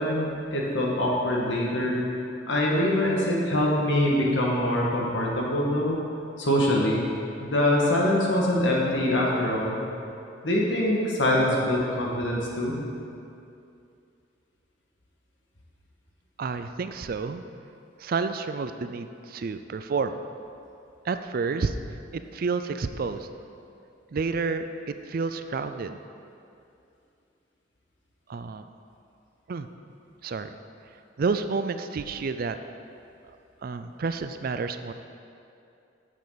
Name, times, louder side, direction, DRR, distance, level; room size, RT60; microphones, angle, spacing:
voice 1, 0.0-2.0 2.5-6.0 6.4-7.0 7.4-9.8 10.4-12.8, left 1 dB, 70° left, -3 dB, 1.8 m, -24 dB
voice 2, 16.4-17.4 18.0-20.2 21.0-21.7 22.1-23.3 24.1-26.0 28.3-28.7 29.5-29.7 30.2-30.6 31.2-32.6 33.6-34.9, right 4 dB, 50° right, 9 dB, 0.4 m, -30 dB
11.0 x 7.4 x 4.1 m, 2.6 s
head